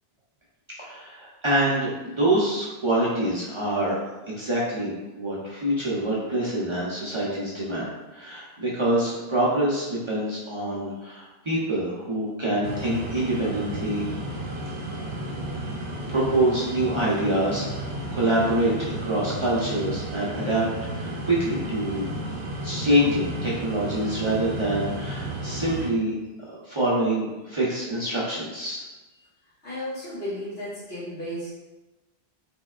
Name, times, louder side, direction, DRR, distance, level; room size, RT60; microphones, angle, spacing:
voice 1, 0.8-4.0 4.3-14.1 16.1-20.6 20.9-22.1 22.6-26.2 26.6-28.8, right 1 dB, 35° right, -8 dB, 0.6 m, -25 dB
sound 1, 12.6-25.9, right 1 dB, 80° right, 0.8 m, -33 dB
voice 2, 29.6-31.5, equal, 75° left, -10 dB, 1.7 m, -34 dB
3.5 x 3.3 x 2.3 m, 1.1 s
omnidirectional pair, 1.1 m